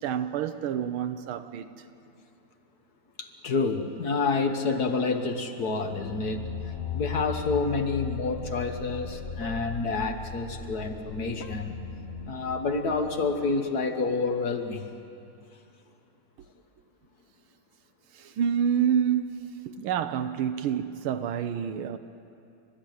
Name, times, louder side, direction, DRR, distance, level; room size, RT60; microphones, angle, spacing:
voice 1, 0.0-1.8 18.1-22.0, right 8 dB, 85° right, 9 dB, 1.6 m, -28 dB
voice 2, 3.2-6.5 6.9-11.8 12.3-14.9, left 4 dB, 50° left, 6 dB, 1.6 m, -28 dB
sound 1, 5.8-14.4, left 6 dB, 70° left, 0.6 m, -38 dB
29.5 x 13.0 x 9.2 m, 2.6 s
omnidirectional pair, 2.3 m